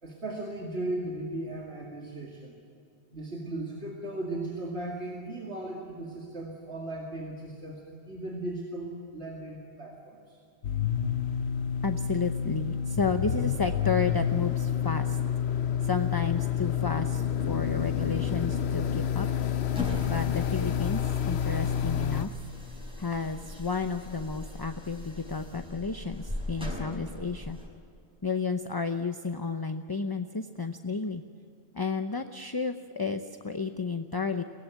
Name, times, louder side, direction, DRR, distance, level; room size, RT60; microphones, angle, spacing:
voice 1, 0.0-2.6 3.1-10.4, right 1 dB, 75° right, -1 dB, 2.6 m, -37 dB
sound 1, 10.6-22.3, left 8 dB, 75° left, 1.0 m, -29 dB
voice 2, 11.8-15.2 15.8-19.3 20.1-22.4 23.0-27.6 28.2-31.2 31.7-34.4, left 4 dB, 25° left, 7 dB, 0.7 m, -32 dB
sound 2, 19.6-27.7, left 1 dB, 5° right, 5.7 m, -39 dB
23.5 x 18.5 x 9.2 m, 2.5 s
omnidirectional pair, 1.1 m